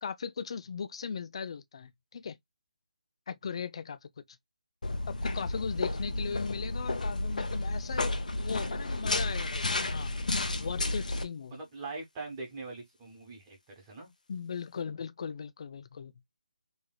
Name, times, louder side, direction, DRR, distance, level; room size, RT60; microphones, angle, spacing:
voice 1, 0.0-2.4 3.3-4.2 5.1-10.1 10.6-11.6 14.3-16.1, left 6 dB, 45° left, 0.4 m, -38 dB
sound 1, 4.8-11.2, left 2 dB, 75° left, 0.8 m, -32 dB
voice 2, 11.5-14.1, right 3 dB, 20° right, 1.3 m, -42 dB
3.2 x 2.7 x 2.2 m
figure-of-eight pair, 160°, 4 cm